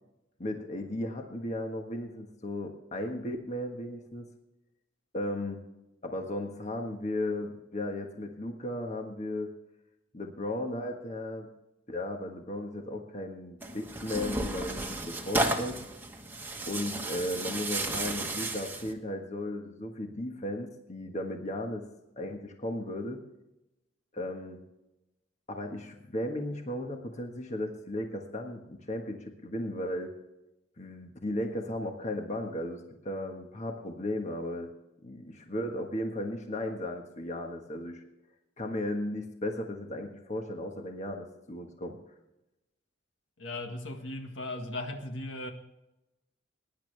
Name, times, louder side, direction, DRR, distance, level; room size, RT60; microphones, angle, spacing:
voice 1, 0.4-4.3 5.1-5.6 6.0-9.5 10.1-11.5 11.9-15.8 16.7-21.8 22.2-23.2 24.1-24.6 25.5-30.1 30.8-34.7 35.0-38.0 38.6-42.0, left 1 dB, 35° left, 1.4 m, -35 dB
Tearing, 13.6-18.9, right 2 dB, 10° right, 1.3 m, -33 dB
voice 2, 43.4-45.5, left 2 dB, 70° left, 1.7 m, -37 dB
22.0 x 10.5 x 3.4 m
head